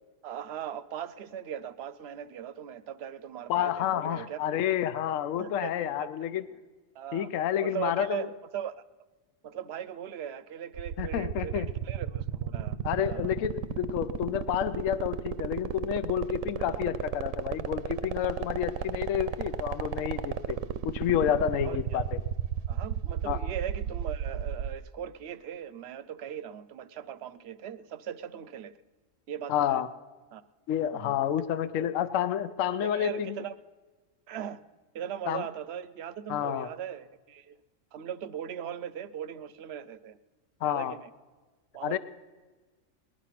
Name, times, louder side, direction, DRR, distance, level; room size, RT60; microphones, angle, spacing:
voice 1, 0.2-4.7 5.4-6.1 6.9-7.3 7.6-8.8 9.4-13.3 16.6-16.8 21.6-22.0 22.7-28.7 29.3-29.8 30.3-30.4 30.9-31.1 31.8-31.9 32.8-33.6 34.3-34.6 34.9-37.6 37.9-40.2 40.6-41.1 41.7-42.0, right 9 dB, 60° right, 16 dB, 0.8 m, -39 dB
voice 2, 3.5-6.5 7.1-8.3 11.0-11.7 12.8-22.2 23.3-23.4 29.5-29.9 30.7-33.4 35.3-35.4 36.3-36.7 40.6-40.9 41.8-42.0, left 10 dB, 75° left, 12 dB, 1.0 m, -29 dB
sound 1, 10.7-24.8, right 9 dB, 80° right, 1.0 m, -32 dB
19.5 x 11.0 x 5.8 m, 1.3 s
omnidirectional pair, 1.4 m